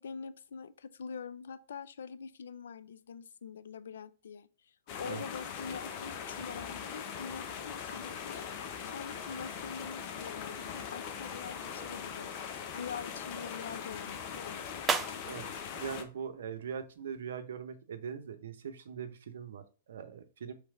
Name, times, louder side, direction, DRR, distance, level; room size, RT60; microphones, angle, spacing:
voice 1, 0.0-12.3 12.7-14.6, left 6 dB, 75° left, 0.4 m, -44 dB
sound 1, 4.9-16.0, left 7 dB, 45° left, 0.7 m, -41 dB
sound 2, 14.8-17.2, right 5 dB, 20° right, 0.4 m, -41 dB
voice 2, 15.7-20.5, right 7 dB, 70° right, 0.7 m, -41 dB
3.3 x 3.1 x 4.8 m
hypercardioid pair, 115°, 0 cm